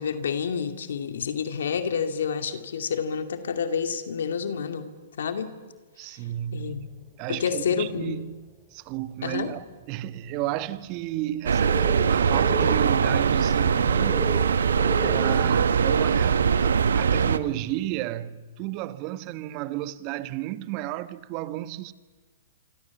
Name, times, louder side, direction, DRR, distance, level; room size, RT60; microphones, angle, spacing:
voice 1, 0.0-5.5 6.5-6.8 7.3-8.2 9.2-9.5, left 6 dB, 75° left, 2.3 m, -29 dB
voice 2, 6.0-14.7 15.0-21.9, right 14 dB, 40° right, 1.3 m, -33 dB
sound 1, 8.1-8.2 9.8-9.9 11.0-16.7, right 1 dB, 5° right, 2.5 m, -37 dB
sound 2, 11.5-17.4, right 6 dB, 80° right, 1.1 m, -22 dB
26.5 x 26.0 x 7.2 m
hypercardioid pair, 130°, 0 cm